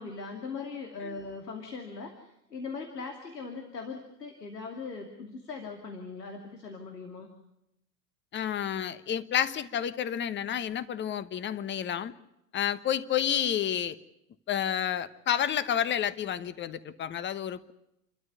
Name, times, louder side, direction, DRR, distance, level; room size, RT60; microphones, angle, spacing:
voice 1, 0.0-7.3, left 4 dB, 80° left, 3 dB, 2.8 m, -40 dB
voice 2, 8.3-12.1 12.5-14.0 14.5-17.7, left 9 dB, 25° left, 14 dB, 1.1 m, -30 dB
29.0 x 13.0 x 9.7 m, 0.84 s
figure-of-eight pair, 90°, 48 cm